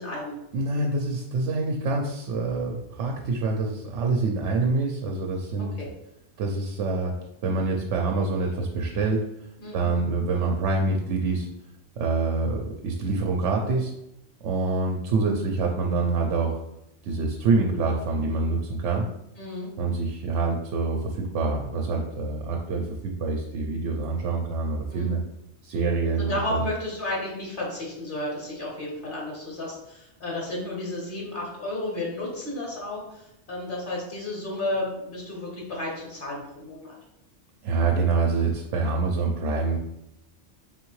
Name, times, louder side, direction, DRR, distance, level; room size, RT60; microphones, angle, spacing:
voice 1, 0.0-0.4 5.6-5.9 9.6-9.9 19.4-19.7 24.9-25.2 26.1-37.0, left 1 dB, 50° left, -3 dB, 1.3 m, -32 dB
voice 2, 0.5-5.8 6.4-7.2 7.4-9.3 9.7-11.5 12.0-13.9 14.4-16.6 17.0-19.1 19.8-25.2 25.6-26.6 37.6-39.8, right 3 dB, 90° right, 1 dB, 0.9 m, -26 dB
4.0 x 3.5 x 3.1 m, 0.84 s
omnidirectional pair, 1.2 m